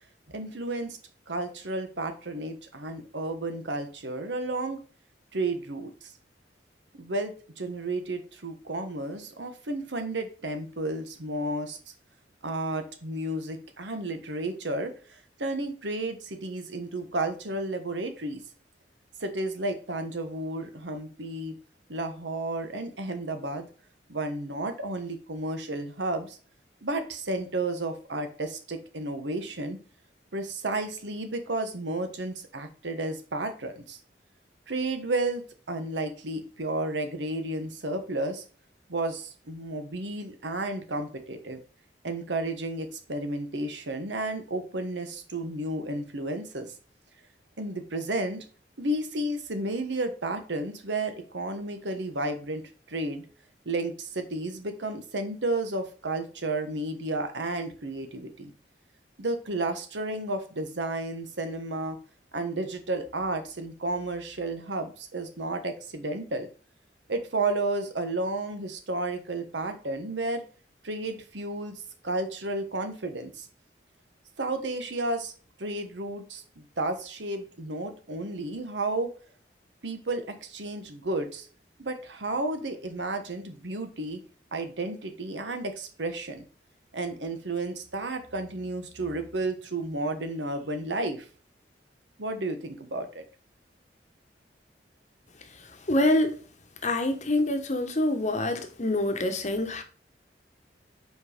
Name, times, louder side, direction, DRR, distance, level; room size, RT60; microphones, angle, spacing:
voice 1, 0.3-1.0 1.3-4.8 5.3-6.1 7.0-11.8 12.4-14.9 15.4-18.4 19.2-21.5 21.9-23.7 24.1-26.4 26.8-29.8 30.3-34.0 34.7-38.4 38.9-41.6 42.0-46.7 47.6-48.4 48.8-52.6 52.9-53.2 53.6-58.5 59.2-62.0 62.3-66.5 67.1-70.4 70.8-73.5 74.4-75.3 75.6-79.1 79.8-81.5 81.8-84.2 84.5-86.5 86.9-91.3 92.2-93.2, right 2 dB, 85° right, 1.2 m, -32 dB
voice 2, 95.9-96.4 96.8-99.8, left 1 dB, 40° left, 1.0 m, -26 dB
5.4 x 4.6 x 5.0 m
head